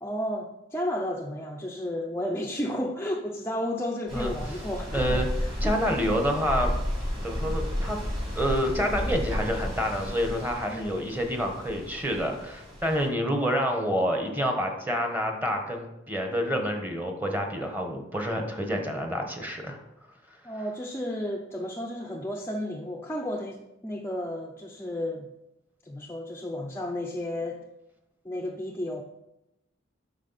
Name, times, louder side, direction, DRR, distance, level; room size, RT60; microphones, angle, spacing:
voice 1, 0.0-5.8 10.7-11.1 20.4-25.3 25.8-27.7 28.2-29.0, left 1 dB, 10° left, 1 dB, 0.5 m, -33 dB
sound 1, 4.1-13.1, equal, 25° right, 2.4 m, -32 dB
voice 2, 4.9-5.3 5.6-6.7 7.2-8.0 8.3-19.8, equal, 10° right, 3 dB, 1.1 m, -28 dB
8.4 x 6.0 x 4.1 m, 0.90 s
head